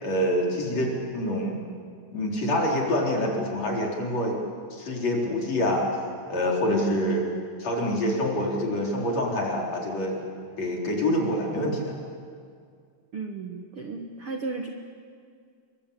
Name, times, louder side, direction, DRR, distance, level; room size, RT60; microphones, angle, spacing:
voice 1, 0.0-1.6 2.1-4.4 4.7-5.9 6.3-7.2 7.6-10.2 10.6-12.0, left 1 dB, 40° left, -1 dB, 5.0 m, -26 dB
voice 2, 13.1-14.7, right 4 dB, 75° right, 3 dB, 1.2 m, -34 dB
28.5 x 23.0 x 8.6 m, 2.2 s
omnidirectional pair, 4.9 m